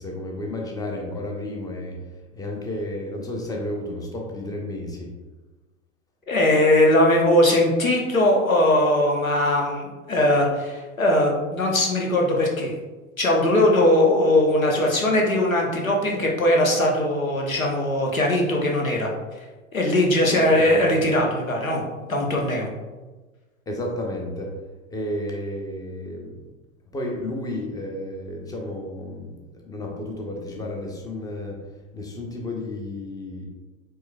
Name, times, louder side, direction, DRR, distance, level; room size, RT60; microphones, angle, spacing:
voice 1, 0.0-2.0 2.3-5.1 20.3-20.8 23.7-24.6 24.9-26.4 26.9-31.6 31.9-33.5, left 1 dB, 10° left, 0 dB, 0.6 m, -32 dB
voice 2, 6.3-12.7 13.2-19.1 19.7-21.8 22.1-22.7, left 1 dB, 90° left, 0 dB, 0.8 m, -20 dB
4.5 x 3.2 x 2.2 m, 1.2 s
figure-of-eight pair, 85°, 40 cm